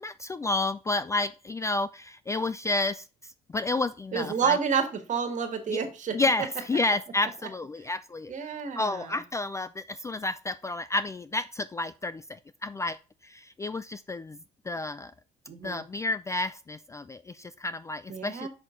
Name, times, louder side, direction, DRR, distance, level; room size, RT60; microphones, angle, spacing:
voice 1, 0.0-3.0 3.5-4.6 5.7-5.8 6.1-13.0 13.2-14.4 14.7-15.1 15.6-18.5, left 2 dB, 15° left, 15 dB, 0.3 m, -30 dB
voice 2, 4.1-6.2 8.3-9.2 15.5-15.8 18.1-18.5, right 6 dB, 45° right, 6 dB, 1.7 m, -29 dB
6.4 x 6.0 x 3.8 m, 0.34 s
cardioid pair, 110°, 17 cm